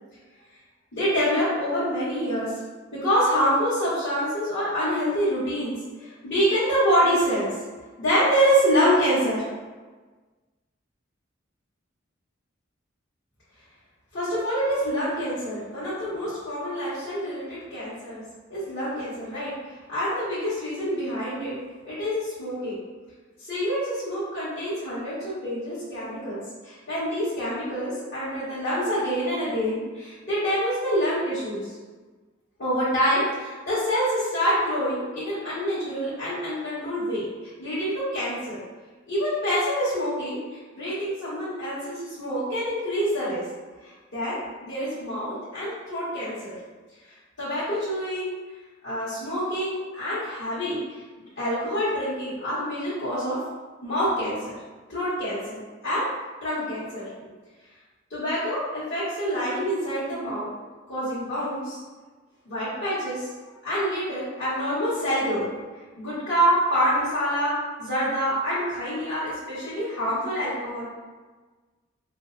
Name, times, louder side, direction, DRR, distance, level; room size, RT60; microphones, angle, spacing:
voice 1, 0.9-2.5 2.9-7.5 8.0-9.4 14.1-18.2 18.5-21.6 21.8-22.8 23.4-31.8 32.6-38.6 39.1-43.4 43.8-46.6 47.0-48.3 48.8-51.0 51.4-53.4 53.8-54.5 54.9-55.6 55.8-56.1 56.4-57.1 58.1-60.5 60.9-61.8 62.5-63.3 63.6-65.4 66.0-70.8, equal, 60° left, -13 dB, 1.3 m, -26 dB
4.8 x 2.1 x 2.6 m, 1.3 s
head